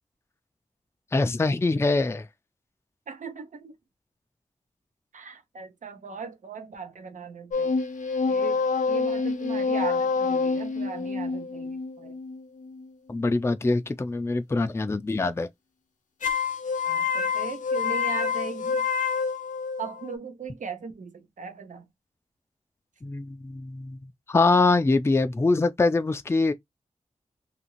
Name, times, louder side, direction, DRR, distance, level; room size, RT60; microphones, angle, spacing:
voice 1, 1.1-2.3 13.1-15.5 23.0-24.0 24.3-26.5, left 3 dB, 20° left, 0.4 m, -23 dB
voice 2, 3.1-3.7 5.1-7.8 8.3-12.2 16.8-18.8 19.8-21.9, right 5 dB, 85° right, 0.6 m, -38 dB
sound 1, 7.5-12.9 16.2-20.2, left 5 dB, 85° left, 0.6 m, -27 dB
2.8 x 2.5 x 2.9 m
wide cardioid pair, 70°, 13 cm